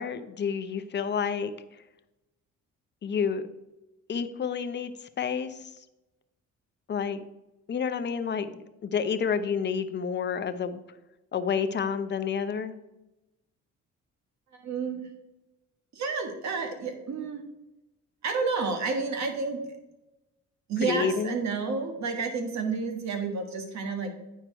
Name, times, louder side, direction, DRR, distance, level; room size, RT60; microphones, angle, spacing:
voice 1, 0.0-1.5 3.0-3.5 4.1-4.9 5.2-5.6 6.9-7.2 7.7-8.5 8.8-10.8 11.3-12.7 20.9-21.4, left 6 dB, 35° left, 10 dB, 0.7 m, -29 dB
voice 2, 14.6-15.1 15.9-17.4 18.2-19.6 20.7-24.1, right 4 dB, 65° right, 5 dB, 1.5 m, -30 dB
9.0 x 4.7 x 4.5 m, 0.98 s
cardioid pair, 90°, 30 cm